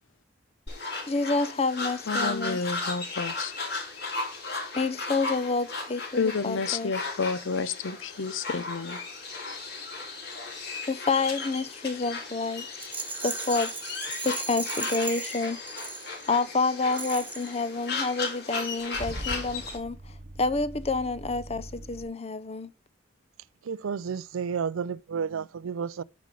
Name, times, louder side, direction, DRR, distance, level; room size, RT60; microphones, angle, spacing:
sound 1, 0.7-19.8, left 3 dB, 55° left, 3.4 m, -36 dB
voice 1, 1.1-2.6 4.7-6.9 10.9-12.7 13.2-13.7 14.2-15.6 16.3-20.0 20.4-22.7, left 3 dB, 30° left, 0.6 m, -28 dB
voice 2, 2.1-3.5 6.2-9.0, left 4 dB, 70° left, 0.6 m, -30 dB
Rattle, 12.8-16.4 16.9-17.6, right 4 dB, 10° right, 1.6 m, -37 dB
Car / Engine starting / Idling, 18.6-22.0, right 1 dB, 40° right, 1.0 m, -41 dB
voice 3, 23.6-26.0, right 6 dB, 85° right, 0.4 m, -31 dB
9.4 x 5.4 x 4.8 m
head